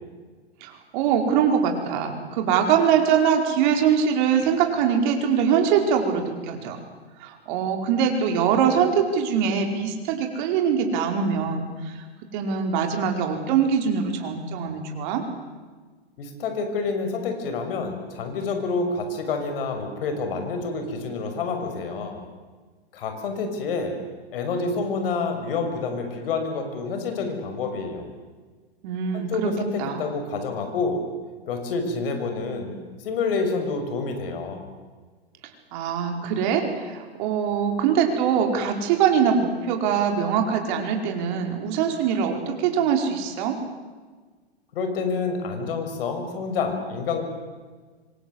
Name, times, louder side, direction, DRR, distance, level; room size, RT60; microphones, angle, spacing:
voice 1, 0.6-6.8 7.2-12.0 12.3-15.2 28.8-29.5 29.8-30.1 35.7-43.6, right 7 dB, 45° right, 4 dB, 5.0 m, -23 dB
voice 2, 16.2-22.2 22.9-24.0 24.3-28.1 29.1-31.0 31.5-32.7 33.0-34.6 44.7-47.2, left 4 dB, 60° left, 6 dB, 6.3 m, -28 dB
26.5 x 25.0 x 8.0 m, 1.4 s
hypercardioid pair, 130°, 32 cm